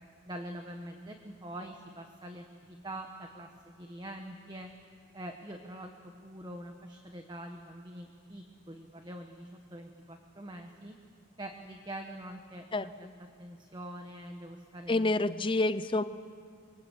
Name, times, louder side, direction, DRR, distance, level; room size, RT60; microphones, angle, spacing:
voice 1, 0.2-4.7 5.1-11.0 11.4-15.4, right 1 dB, 20° right, 4 dB, 1.3 m, -44 dB
voice 2, 14.9-16.0, left 2 dB, 25° left, 13 dB, 0.6 m, -28 dB
29.0 x 24.0 x 8.3 m, 2.3 s
head